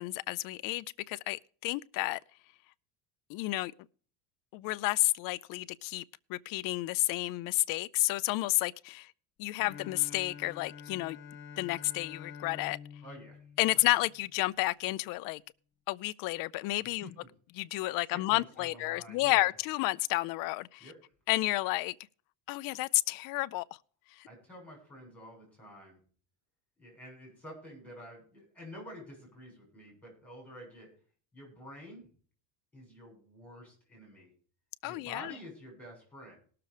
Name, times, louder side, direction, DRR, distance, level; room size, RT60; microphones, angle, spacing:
voice 1, 0.0-2.2 3.3-3.7 4.5-6.0 6.3-9.1 9.4-11.2 11.6-12.8 13.6-15.4 15.9-17.1 17.6-20.8 21.3-21.9 22.5-23.6 24.2-24.3 34.8-35.4, left 19 dB, 50° left, 0.5 m, -31 dB
Bowed string instrument, 9.6-14.5, left 7 dB, 25° left, 2.2 m, -48 dB
voice 2, 13.0-13.5 13.7-13.9 16.8-17.3 18.1-19.5 20.8-20.9 24.2-26.0 26.8-30.9 31.3-32.1 32.7-34.3 34.8-36.4, equal, 5° left, 7.4 m, -49 dB
18.5 x 6.8 x 4.9 m
cardioid pair, 175°, 46 cm